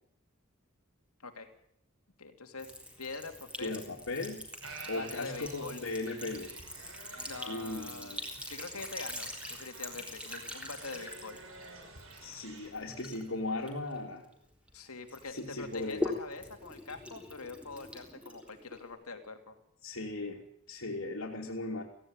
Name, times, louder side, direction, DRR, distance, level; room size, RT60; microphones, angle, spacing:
voice 1, 2.2-2.7 3.0-3.8 4.8-5.8 7.3-8.2 8.5-11.4 14.7-19.6, left 4 dB, 85° left, 6 dB, 3.0 m, -44 dB
Sink (filling or washing) / Trickle dribble, 2.6-14.7 15.1-18.9, left 1 dB, 5° right, 3.6 m, -43 dB
voice 2, 3.6-4.4 4.9-6.5 7.5-8.2 12.2-14.2 15.3-16.1 19.8-21.8, left 2 dB, 70° left, -3 dB, 3.0 m, -37 dB
sound 1, 4.6-12.7, right 3 dB, 70° right, 6.1 m, -50 dB
17.5 x 16.5 x 9.1 m, 0.71 s
head